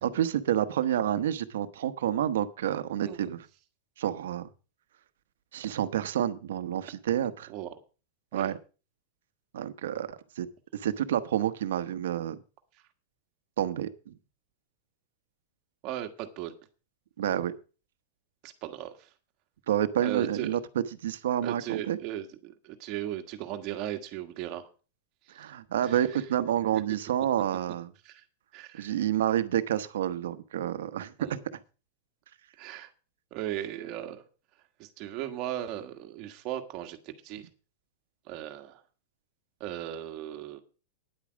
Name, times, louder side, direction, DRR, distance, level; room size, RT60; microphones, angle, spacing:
voice 1, 0.0-3.5 4.0-4.5 5.5-7.5 8.3-8.6 9.5-10.5 10.7-12.4 13.6-14.1 17.2-17.6 19.7-22.0 25.3-27.9 28.7-31.4, right 11 dB, 75° right, 13 dB, 1.0 m, -29 dB
voice 2, 15.8-16.5 18.4-19.1 20.0-20.6 21.4-24.7 25.5-25.6 25.8-26.0 26.7-26.8 28.0-28.2 28.5-28.9 31.2-31.4 32.6-32.9 33.3-34.2 34.8-37.0 37.2-37.5 38.3-38.8 39.6-40.6, right 12 dB, 30° right, 5 dB, 1.4 m, -37 dB
10.0 x 8.5 x 6.2 m, 0.35 s
supercardioid pair, 180°, 0 cm